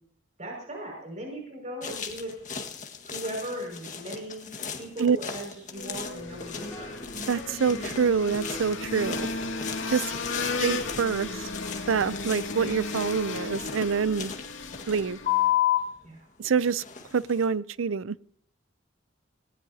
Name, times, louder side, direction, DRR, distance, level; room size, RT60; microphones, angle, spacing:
voice 1, 0.4-2.3 3.1-6.9 10.3-10.6 16.0-16.3, right 1 dB, 40° right, 5.9 m, -38 dB
sound 1, 1.8-16.1 16.7-17.5, left 10 dB, 40° left, 1.7 m, -34 dB
sound 2, 5.7-15.5, left 3 dB, 75° left, 2.4 m, -35 dB
sound 3, 5.8-12.5, equal, 10° left, 4.2 m, -45 dB
voice 2, 7.3-9.3 9.9-10.0 10.6-11.5 11.9-14.3 14.9-15.2 16.4-16.8 17.1-18.1, right 6 dB, 90° right, 0.5 m, -26 dB
19.5 x 19.0 x 2.8 m
head